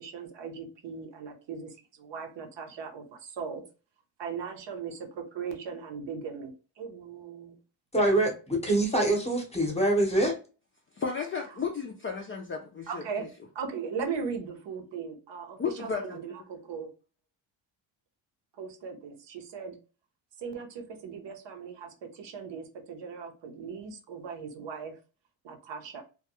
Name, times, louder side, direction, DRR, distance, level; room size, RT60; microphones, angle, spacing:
voice 1, 0.0-1.7 2.0-3.6 4.2-7.6 12.9-13.3 13.5-16.9 18.6-19.8 20.4-24.9 25.4-26.0, right 6 dB, 60° right, 0.8 m, -38 dB
voice 2, 7.9-10.4, right 1 dB, 15° left, 0.8 m, -25 dB
voice 3, 11.0-13.1 15.6-16.2, left 6 dB, 30° left, 0.3 m, -33 dB
2.3 x 2.2 x 2.8 m
cardioid pair, 105°, 48 cm